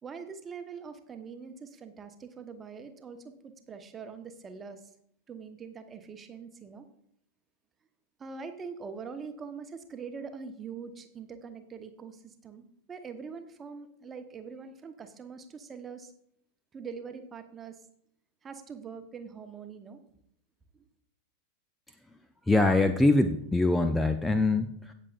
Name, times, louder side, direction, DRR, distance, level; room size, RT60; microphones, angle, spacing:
voice 1, 0.0-4.8 5.3-6.8 8.2-16.1 16.7-17.8 18.4-20.0 20.7-20.9, right 5 dB, 20° right, 7 dB, 1.1 m, -43 dB
voice 2, 22.5-24.9, left 2 dB, 5° left, 8 dB, 0.6 m, -24 dB
17.0 x 6.8 x 2.5 m, 0.69 s
figure-of-eight pair, 90°, 0 cm